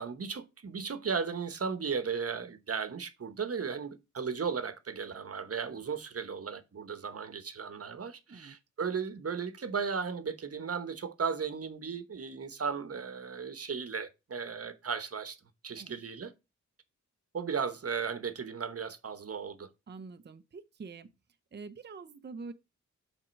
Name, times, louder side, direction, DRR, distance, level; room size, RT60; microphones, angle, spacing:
voice 1, 0.0-15.4 15.6-16.3 17.3-19.7, right 6 dB, 50° right, 1.0 m, -35 dB
voice 2, 19.9-21.1 21.5-22.5, right 4 dB, 35° right, 0.6 m, -45 dB
7.6 x 3.7 x 5.1 m
wide cardioid pair, 95°, 30 cm